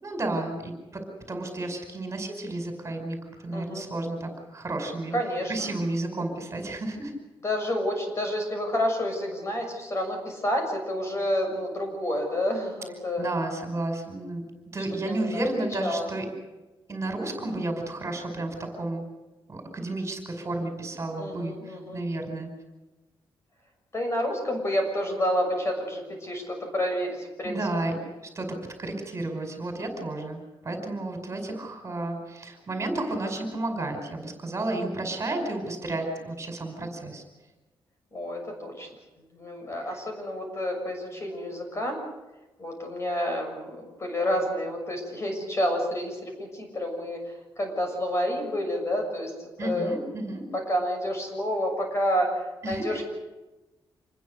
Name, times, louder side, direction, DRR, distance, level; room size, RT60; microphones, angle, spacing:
voice 1, 0.0-5.2 5.5-7.1 13.2-14.4 14.7-16.3 16.9-19.1 19.5-22.5 27.4-28.0 28.3-37.2 39.9-40.0 49.6-50.4 52.6-53.0, right 2 dB, 30° right, 4 dB, 5.3 m, -32 dB
voice 2, 3.5-3.9 5.1-5.7 7.4-13.2 15.0-15.5 15.8-16.1 21.2-22.0 23.9-27.6 27.8-27.9 38.1-38.9 39.3-42.0 42.6-47.2 47.6-53.0, equal, 30° left, 3 dB, 6.7 m, -29 dB
27.0 x 21.0 x 6.7 m, 1.1 s
wide cardioid pair, 140°, 9 cm